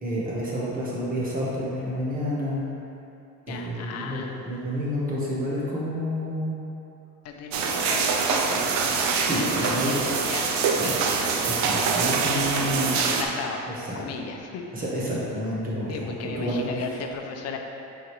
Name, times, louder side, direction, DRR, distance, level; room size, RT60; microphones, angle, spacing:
voice 1, 0.0-2.6 3.5-6.6 8.8-9.9 10.8-11.0 11.5-13.0 13.9-14.0 14.7-16.8, equal, 30° right, -6 dB, 1.4 m, -29 dB
voice 2, 3.5-4.4 7.2-8.8 9.6-11.0 12.5-13.7 13.9-14.6 15.9-17.6, left 5 dB, 55° left, 3 dB, 0.6 m, -36 dB
sound 1, 7.5-13.2, right 5 dB, 65° right, 0.6 m, -24 dB
7.8 x 3.9 x 3.2 m, 2.8 s
cardioid pair, 135°, 31 cm